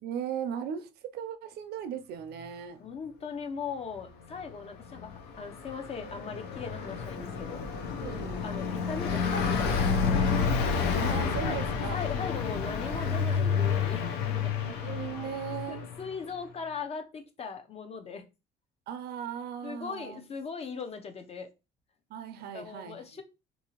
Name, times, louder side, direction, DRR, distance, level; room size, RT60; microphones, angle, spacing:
voice 1, 0.0-2.8 8.0-8.5 10.9-12.0 14.6-15.9 18.9-20.3 22.1-23.2, right 8 dB, 70° right, 0.5 m, -37 dB
voice 2, 2.8-7.6 8.4-10.3 11.4-11.6 11.9-14.6 15.7-18.3 19.6-21.5 22.5-23.2, left 5 dB, 35° left, 0.6 m, -39 dB
Car passing by, 5.0-16.0, left 6 dB, 80° left, 0.7 m, -29 dB
2.7 x 2.7 x 2.9 m
cardioid pair, 110°, 17 cm